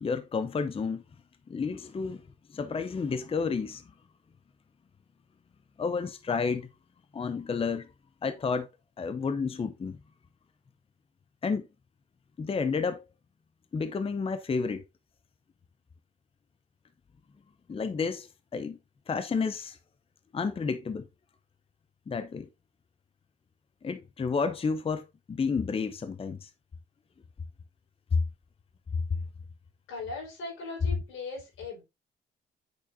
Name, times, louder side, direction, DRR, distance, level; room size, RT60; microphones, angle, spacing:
voice 1, 0.0-1.0 1.5-2.2 2.5-3.8 5.8-6.7 7.1-7.9 8.2-8.7 9.0-10.0 11.4-11.6 12.4-13.0 13.7-14.8 17.7-18.8 19.1-19.8 20.3-21.1 22.1-22.5 23.8-26.5 28.1-28.2, left 5 dB, 30° left, 0.7 m, -30 dB
voice 2, 29.9-31.8, left 3 dB, 85° left, 4.4 m, -39 dB
8.4 x 6.3 x 2.6 m
cardioid pair, 90°, 20 cm